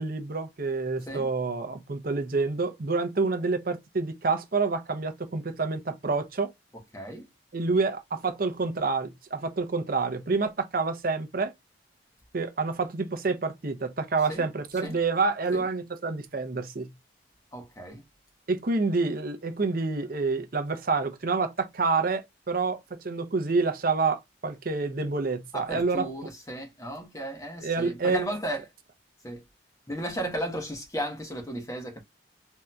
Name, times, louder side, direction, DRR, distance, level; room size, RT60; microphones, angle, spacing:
voice 1, 0.0-6.5 7.5-11.5 12.3-16.9 18.5-26.1 27.6-28.2, right 4 dB, 50° right, 0.6 m, -28 dB
voice 2, 6.9-7.3 14.3-14.4 14.8-15.0 15.5-15.7 17.5-18.0 25.5-28.6 29.2-29.4 29.9-32.0, right 1 dB, 15° left, 1.0 m, -34 dB
3.6 x 2.7 x 2.2 m
head